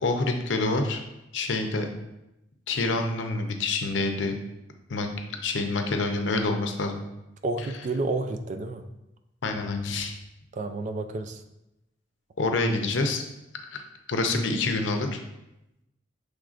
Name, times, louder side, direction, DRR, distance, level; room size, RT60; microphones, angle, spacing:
voice 1, 0.0-1.0 1.3-1.9 2.7-4.3 4.9-5.1 5.4-7.0 9.4-10.1 12.4-13.2 13.7-13.8 14.1-15.2, left 3 dB, 85° left, 5 dB, 0.6 m, -27 dB
voice 2, 7.4-8.8 10.5-11.4, right 3 dB, 40° right, 7 dB, 0.3 m, -30 dB
6.2 x 3.3 x 2.4 m, 0.91 s
head